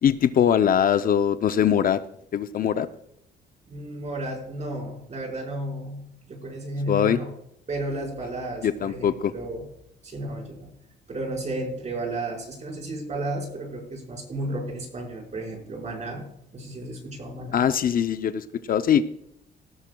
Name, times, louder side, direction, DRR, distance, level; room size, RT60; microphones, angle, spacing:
voice 1, 0.0-2.0 2.3-2.9 6.9-7.2 8.6-9.3 17.5-19.1, left 9 dB, 50° left, 11 dB, 0.5 m, -22 dB
voice 2, 3.7-7.3 7.7-9.7 10.0-10.7 11.1-16.2 16.5-17.6, right 1 dB, 40° right, 0 dB, 4.8 m, -33 dB
17.5 x 13.5 x 2.3 m, 0.76 s
cardioid pair, 110°, 18 cm